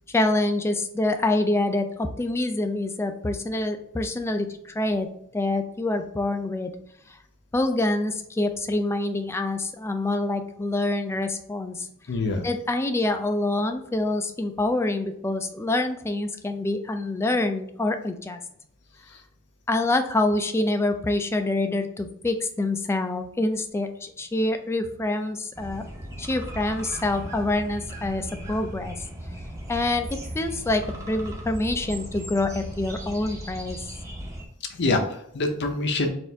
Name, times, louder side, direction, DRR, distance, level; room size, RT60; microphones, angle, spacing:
voice 1, 0.1-5.1 5.3-6.7 7.5-11.9 12.4-18.4 19.7-25.9 26.2-28.9 29.7-33.8, left 2 dB, 10° left, 6 dB, 0.3 m, -26 dB
voice 2, 12.1-12.4 34.7-36.1, left 2 dB, 55° left, 5 dB, 0.6 m, -25 dB
sound 1, 25.5-34.5, right 1 dB, 15° right, 0.7 m, -37 dB
4.3 x 2.5 x 3.4 m, 0.71 s
head